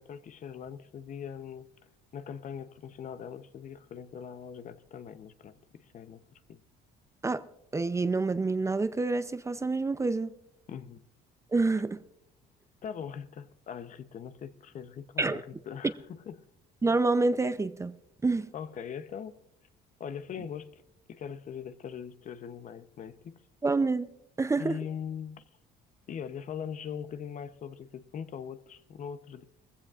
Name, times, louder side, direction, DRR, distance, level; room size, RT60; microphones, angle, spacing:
voice 1, 0.0-1.7 2.1-6.6 10.7-11.0 12.8-16.0 16.3-16.4 18.5-19.4 20.0-20.8 21.1-23.4 24.5-25.4 26.1-29.4, left 7 dB, 50° left, 0.8 m, -41 dB
voice 2, 7.7-10.3 11.5-12.0 15.2-15.4 16.8-18.5 23.6-24.1 24.4-24.8, right 3 dB, 15° right, 0.5 m, -27 dB
20.0 x 15.5 x 2.5 m
cardioid pair, 100°, 17 cm